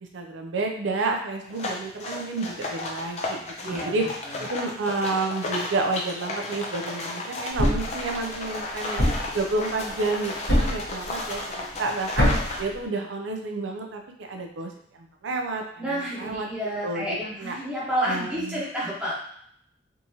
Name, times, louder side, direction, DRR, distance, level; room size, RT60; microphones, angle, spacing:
voice 1, 0.0-4.1 4.4-9.0 9.3-12.3 12.6-16.5 16.8-17.6 18.0-18.6, right 3 dB, 85° right, 2 dB, 0.5 m, -30 dB
sound 1, 1.5-12.6, left 2 dB, 35° left, 0.5 m, -34 dB
voice 2, 3.6-4.0 4.2-4.4 15.8-19.1, right 1 dB, 5° right, -7 dB, 1.0 m, -30 dB
Thump thud, 7.6-8.0 9.0-9.4 10.5-10.9 12.2-12.6, equal, 80° left, 1.5 m, -22 dB
3.5 x 2.9 x 2.7 m, 0.68 s
head